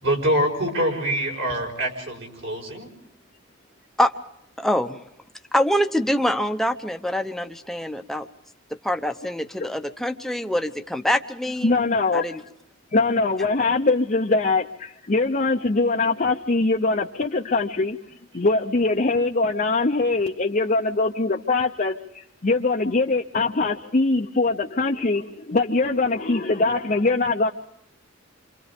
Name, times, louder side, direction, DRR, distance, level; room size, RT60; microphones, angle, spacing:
voice 1, 0.0-2.9, right 1 dB, 60° right, 1 dB, 5.2 m, -25 dB
voice 2, 4.6-5.0 5.5-8.3 8.8-11.8 12.1-12.4, equal, ahead, 6 dB, 0.8 m, -24 dB
voice 3, 11.6-12.2 12.9-18.0 18.3-27.5, left 3 dB, 40° left, 2 dB, 0.7 m, -22 dB
29.0 x 26.0 x 3.6 m, 0.79 s
head